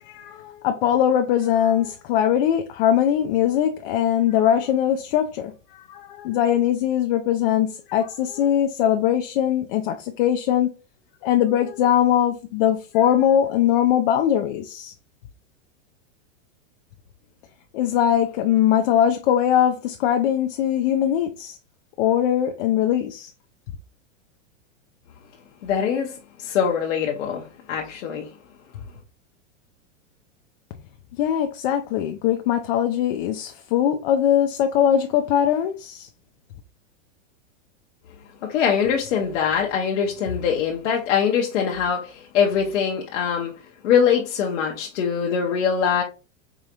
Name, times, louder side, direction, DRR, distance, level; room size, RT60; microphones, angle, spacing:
voice 1, 0.0-10.7 11.2-14.9 17.7-21.6 22.0-23.3 31.1-36.1, left 10 dB, 45° left, 0.4 m, -21 dB
voice 2, 25.6-28.3 38.4-43.5 43.8-46.0, left 7 dB, 65° left, 0.8 m, -23 dB
4.8 x 2.5 x 2.8 m
supercardioid pair, 135°, 38 cm